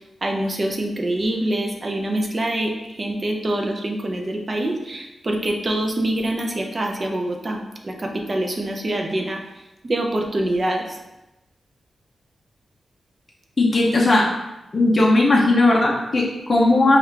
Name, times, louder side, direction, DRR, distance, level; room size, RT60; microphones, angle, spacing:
voice 1, 0.2-9.4 9.8-11.0, right 1 dB, 30° right, 2 dB, 0.5 m, -25 dB
voice 2, 13.6-14.2 14.7-17.0, left 2 dB, 30° left, -3 dB, 0.6 m, -17 dB
4.8 x 2.4 x 3.3 m, 0.97 s
wide cardioid pair, 150°, 0 cm